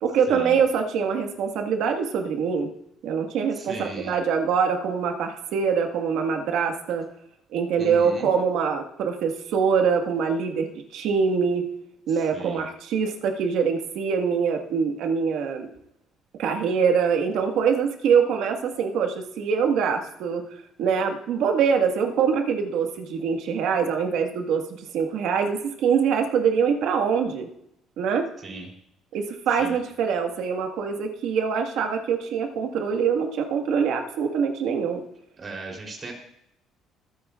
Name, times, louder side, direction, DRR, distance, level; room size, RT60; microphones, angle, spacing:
voice 1, 0.0-2.7 3.0-7.1 7.5-10.7 10.9-11.6 12.1-15.7 16.4-20.4 20.8-27.5 28.0-28.3 29.1-35.0, right 6 dB, 75° right, 4 dB, 1.7 m, -24 dB
voice 2, 3.5-4.2 7.8-8.3 12.3-12.6 28.4-28.7 29.6-29.8 35.4-36.1, right 2 dB, 30° right, 1 dB, 3.5 m, -37 dB
22.5 x 9.4 x 2.5 m, 0.76 s
cardioid pair, 145°, 0 cm